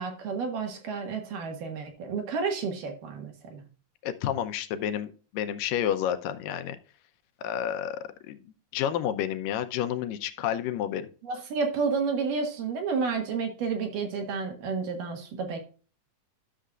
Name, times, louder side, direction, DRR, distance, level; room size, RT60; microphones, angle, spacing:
voice 1, 0.0-3.6 11.2-15.6, right 5 dB, 75° right, 4 dB, 3.3 m, -31 dB
voice 2, 4.0-6.8 7.4-8.4 8.7-11.1, left 10 dB, 85° left, 10 dB, 2.4 m, -30 dB
11.5 x 6.6 x 2.4 m, 0.36 s
omnidirectional pair, 3.8 m